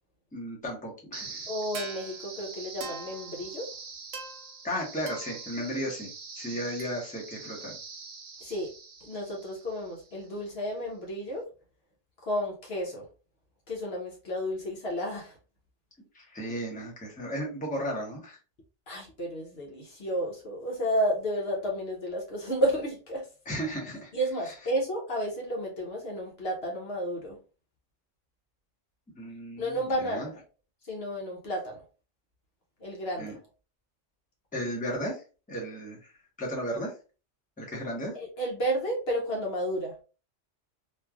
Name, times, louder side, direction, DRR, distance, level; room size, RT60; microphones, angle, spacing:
voice 1, 0.3-1.5 4.6-7.8 16.1-18.4 23.5-24.1 24.4-24.5 29.1-30.3 33.2-33.3 34.5-35.2 35.5-36.9 37.6-38.2, equal, 10° left, 0.8 m, -35 dB
sound 1, 1.1-10.2, right 4 dB, 85° right, 1.1 m, -43 dB
voice 2, 1.5-3.7 8.4-8.7 9.0-11.4 12.2-13.1 13.7-15.4 18.9-23.3 24.1-27.4 29.6-30.4 30.8-31.8 32.8-33.4 38.1-40.0, equal, 60° left, 1.0 m, -32 dB
3.1 x 2.5 x 2.3 m
omnidirectional pair, 1.3 m